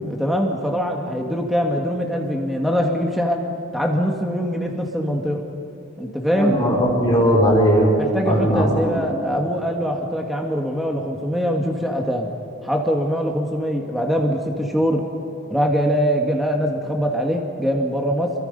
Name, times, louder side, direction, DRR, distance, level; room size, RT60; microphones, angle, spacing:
voice 1, 0.1-3.4 3.7-5.4 6.0-6.6 8.0-12.3 12.6-15.0 15.5-18.3, equal, ahead, 1 dB, 1.8 m, -22 dB
voice 2, 6.3-7.9 8.2-9.0, equal, 20° left, -3 dB, 5.2 m, -18 dB
30.0 x 23.5 x 5.4 m, 2.7 s
head